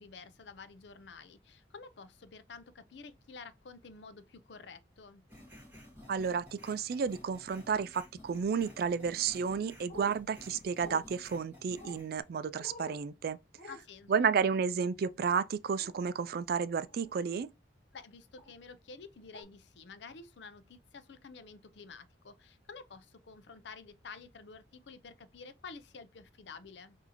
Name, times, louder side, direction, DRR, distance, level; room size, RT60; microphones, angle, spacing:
voice 1, 0.0-5.3 13.7-14.3 17.9-27.0, left 4 dB, 70° left, 0.5 m, -50 dB
sound 1, 5.3-12.2, left 1 dB, 10° right, 1.6 m, -54 dB
voice 2, 6.1-13.4 14.1-17.5, right 6 dB, 55° right, 0.3 m, -32 dB
sound 2, 9.9-10.2 10.8-11.0 11.8-12.0 12.6-13.0 13.6-13.8 15.8-16.0 16.8-17.1 18.4-18.5 19.3-19.4, left 2 dB, 50° left, 1.2 m, -48 dB
6.0 x 2.7 x 2.9 m
head